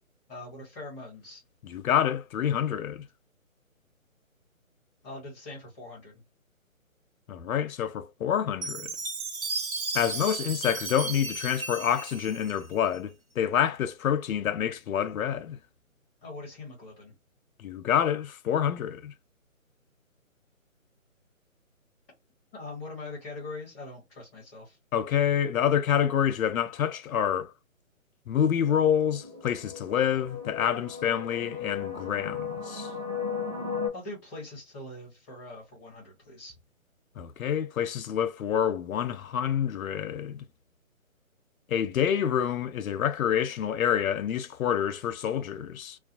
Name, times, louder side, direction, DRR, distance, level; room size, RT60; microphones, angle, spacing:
voice 1, 0.3-1.4 5.0-6.2 16.2-17.1 22.5-24.8 33.9-36.5, left 2 dB, 10° left, 0.8 m, -42 dB
voice 2, 1.6-3.0 7.3-9.0 9.9-15.6 17.6-19.1 24.9-27.5 28.3-32.9 37.2-40.4 41.7-46.0, left 9 dB, 75° left, 0.5 m, -27 dB
Chime, 8.6-13.0, right 3 dB, 80° right, 1.2 m, -34 dB
sound 1, 28.7-33.9, left 6 dB, 30° right, 1.0 m, -36 dB
2.4 x 2.2 x 2.6 m
hypercardioid pair, 160°, 41 cm